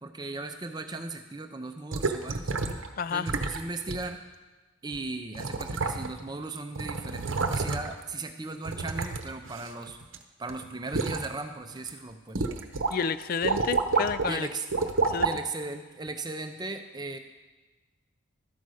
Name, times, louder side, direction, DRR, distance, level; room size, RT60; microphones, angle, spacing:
voice 1, 0.0-2.5 3.1-4.2 4.8-10.0 10.4-12.4 14.3-14.7 15.2-17.2, right 3 dB, 20° right, 7 dB, 0.6 m, -37 dB
sound 1, 1.9-2.9 3.3-3.6 3.9-4.0 4.9-5.0 5.3-6.3 6.6-8.0 8.6-10.2 10.5-11.3 11.7-11.9 12.4-12.9 13.2-14.3 14.7-15.4 16.1-16.2, right 3 dB, 65° right, 0.8 m, -29 dB
voice 2, 3.0-3.3 12.9-14.5 15.0-15.3, left 6 dB, 45° left, 15 dB, 0.3 m, -30 dB
13.0 x 5.4 x 6.3 m, 1.2 s
head